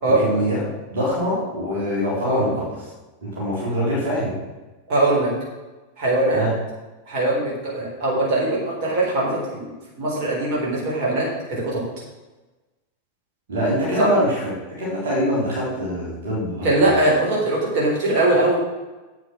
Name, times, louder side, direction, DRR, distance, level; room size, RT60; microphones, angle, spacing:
voice 1, 0.2-2.8 3.2-4.3 6.3-6.6 13.5-16.9, equal, 60° right, -5 dB, 3.7 m, -24 dB
voice 2, 4.9-5.3 6.0-6.4 7.1-9.7 10.0-11.8 14.0-14.1 16.6-18.6, right 2 dB, 45° right, -3 dB, 4.2 m, -21 dB
8.5 x 7.9 x 6.4 m, 1.1 s
figure-of-eight pair, 90°, 0 cm